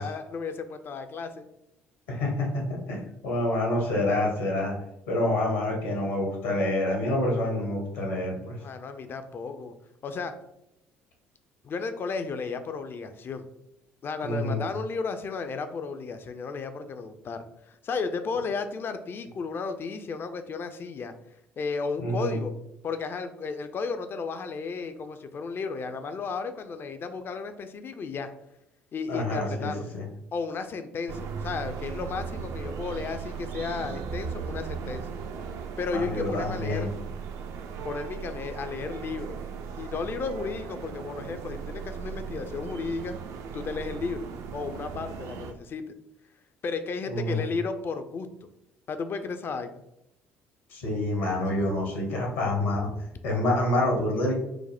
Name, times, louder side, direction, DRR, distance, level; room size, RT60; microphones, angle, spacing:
voice 1, 0.0-1.5 8.6-9.8 10.0-10.4 11.6-13.5 14.0-21.1 21.6-22.5 22.8-28.3 28.9-29.8 30.3-35.1 35.8-36.9 37.8-39.4 39.8-43.2 43.5-44.2 44.5-45.9 46.6-48.5 48.9-49.8, left 4 dB, 35° left, 8 dB, 0.4 m, -33 dB
voice 2, 2.1-4.7 5.1-8.6 14.2-14.6 22.0-22.3 29.1-30.0 35.9-36.9 47.1-47.4 50.7-52.9 53.2-54.3, left 1 dB, 70° left, 0 dB, 1.1 m, -27 dB
sound 1, 31.1-45.5, right 6 dB, 55° right, 0.4 m, -37 dB
4.7 x 2.1 x 3.4 m, 0.83 s
figure-of-eight pair, 50°, 6 cm